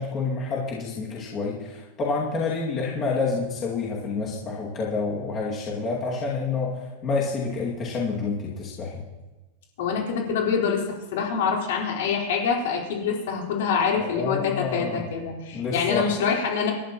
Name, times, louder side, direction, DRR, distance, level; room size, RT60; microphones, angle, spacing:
voice 1, 0.0-9.0 14.0-15.0 15.5-16.1, left 4 dB, 25° left, -4 dB, 2.3 m, -28 dB
voice 2, 9.8-10.8 11.1-16.7, left 6 dB, 65° left, -2 dB, 4.3 m, -25 dB
27.5 x 12.5 x 3.0 m, 1.1 s
supercardioid pair, 165°, 0 cm